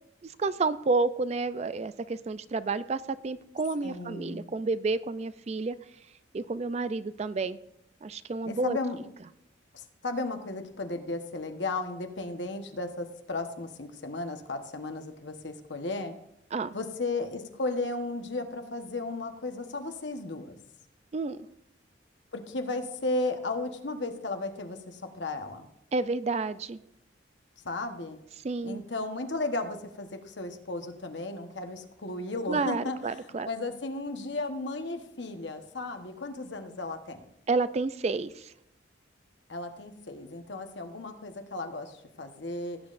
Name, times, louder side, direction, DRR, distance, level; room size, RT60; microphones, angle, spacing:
voice 1, 0.4-5.8 6.3-7.6 8.0-8.8 16.5-16.8 21.1-21.4 25.9-26.8 28.4-28.8 32.5-33.5 37.5-38.5, right 3 dB, 35° right, 15 dB, 0.3 m, -30 dB
voice 2, 3.8-4.5 8.4-9.0 9.7-16.2 16.7-20.6 22.3-25.7 27.6-28.2 28.6-37.2 39.5-42.8, left 2 dB, 70° left, 6 dB, 1.2 m, -35 dB
17.0 x 8.6 x 2.5 m, 0.80 s
head